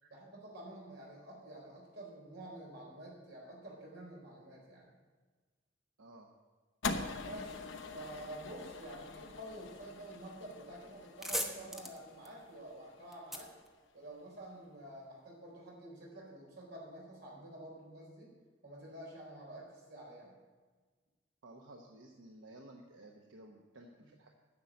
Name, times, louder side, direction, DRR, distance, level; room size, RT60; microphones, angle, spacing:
voice 1, 0.1-4.9 7.2-13.5 13.9-18.3 18.6-20.4, right 1 dB, 60° right, -3 dB, 4.4 m, -49 dB
sound 1, 6.8-13.2, left 4 dB, 80° left, 0.9 m, -43 dB
sound 2, 11.0-14.5, equal, ahead, 0.9 m, -42 dB
voice 2, 21.4-24.3, right 1 dB, 90° right, 1 dB, 1.0 m, -55 dB
10.0 x 6.5 x 8.6 m, 1.4 s
head